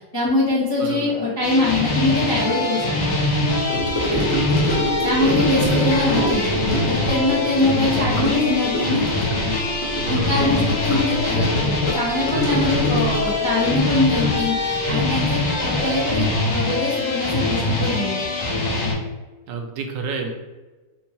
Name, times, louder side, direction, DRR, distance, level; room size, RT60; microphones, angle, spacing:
voice 1, 0.1-3.2 5.0-6.5 6.9-9.1 10.1-18.2, left 2 dB, 20° left, -8 dB, 0.5 m, -23 dB
voice 2, 0.8-1.1 4.1-5.4 10.0-10.8 19.5-20.3, right 4 dB, 80° right, 3 dB, 1.3 m, -32 dB
sound 1, 1.4-18.9, left 2 dB, 85° left, 1.6 m, -23 dB
Gurgling / Sink (filling or washing) / Trickle dribble, 3.7-15.4 15.6-15.9 16.2-16.3, equal, 50° left, 0.9 m, -27 dB
4.2 x 2.2 x 2.9 m, 1.2 s
omnidirectional pair, 2.0 m